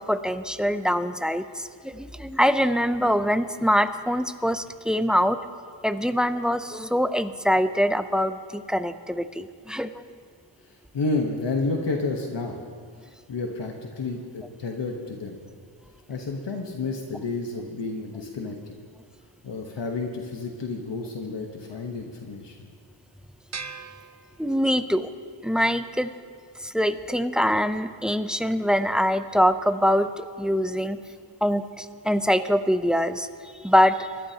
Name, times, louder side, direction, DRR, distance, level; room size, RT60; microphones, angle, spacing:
voice 1, 0.0-5.4 5.8-10.1 24.4-25.1 25.4-26.1 26.6-31.0 31.4-34.1, equal, ahead, 11 dB, 0.5 m, -24 dB
voice 2, 10.6-12.6 13.0-15.4 16.1-18.8 19.4-22.7, left 3 dB, 70° left, 2 dB, 1.2 m, -31 dB
sound 1, 23.5-25.0, right 5 dB, 40° right, 0.7 m, -40 dB
25.0 x 12.5 x 2.9 m, 2.1 s
wide cardioid pair, 80°, 44 cm